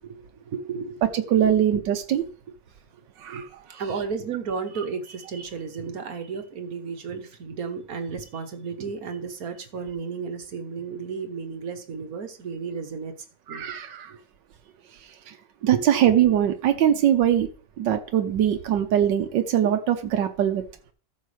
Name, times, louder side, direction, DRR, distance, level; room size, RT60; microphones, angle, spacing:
voice 1, 0.0-1.0 1.3-1.6 2.2-2.3 3.3-3.4 3.8-13.1 13.5-13.7 14.1-14.2 15.6-16.3, right 5 dB, 60° right, 6 dB, 1.4 m, -33 dB
voice 2, 1.1-2.2 3.2-3.8 13.5-14.1 15.3-15.4 15.6-17.5 17.8-20.6, right 10 dB, 85° right, 6 dB, 1.5 m, -22 dB
14.0 x 6.5 x 3.3 m, 0.40 s
omnidirectional pair, 1.9 m